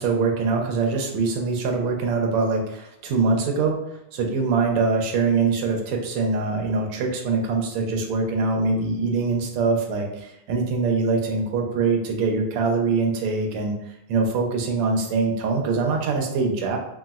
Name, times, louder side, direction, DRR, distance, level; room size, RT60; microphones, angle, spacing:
voice 1, 0.0-3.8 4.1-13.8 14.1-16.8, right 4 dB, 90° right, 1 dB, 1.5 m, -23 dB
4.1 x 2.0 x 2.3 m, 0.84 s
omnidirectional pair, 2.4 m